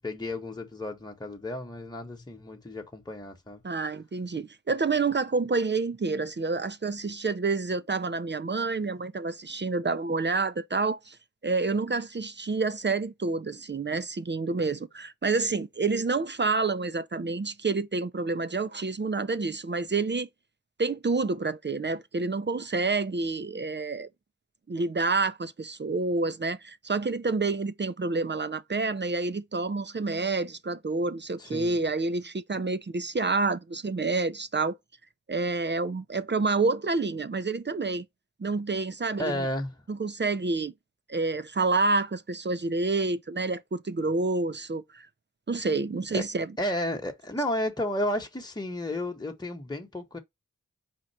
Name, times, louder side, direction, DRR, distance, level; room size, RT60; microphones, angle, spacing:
voice 1, 0.0-3.6 31.4-31.8 39.2-39.8 46.1-46.2 46.6-50.2, left 1 dB, 15° left, 1.1 m, -32 dB
voice 2, 3.6-11.2 11.4-20.3 20.8-24.1 24.7-34.8 35.3-38.0 38.4-39.5 39.9-40.7 41.1-45.1 45.5-46.5, right 3 dB, 35° right, 0.5 m, -28 dB
4.5 x 2.4 x 4.2 m
cardioid pair, 40°, 32 cm